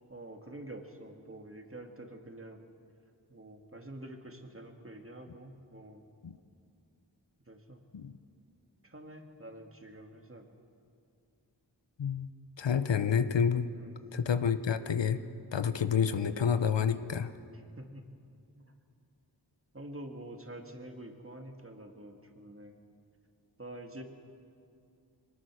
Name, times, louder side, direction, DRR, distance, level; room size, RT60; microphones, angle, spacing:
voice 1, 0.1-2.6 3.3-6.0 7.5-7.8 8.8-10.6 13.7-14.0 17.8-18.0 18.5-18.7 19.7-22.7 23.6-24.0, right 1 dB, 30° right, 4 dB, 2.2 m, -47 dB
voice 2, 12.6-13.7 14.1-15.2 15.5-17.3, left 7 dB, 85° left, 11 dB, 0.9 m, -29 dB
23.0 x 20.0 x 6.3 m, 2.4 s
wide cardioid pair, 45°, 42 cm